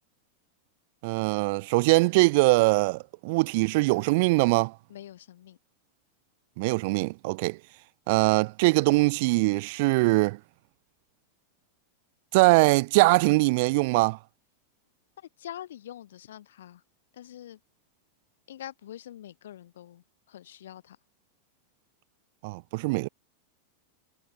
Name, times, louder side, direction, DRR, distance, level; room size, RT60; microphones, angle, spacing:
voice 1, 1.0-4.7 6.6-7.6 8.1-10.4 12.3-14.2 22.4-23.1, right 25 dB, 50° right, 1.2 m, -22 dB
voice 2, 4.9-5.6 15.2-16.8 17.1-17.6 18.5-21.0, left 11 dB, 60° left, 2.9 m, -44 dB
figure-of-eight pair, 90°, 0 cm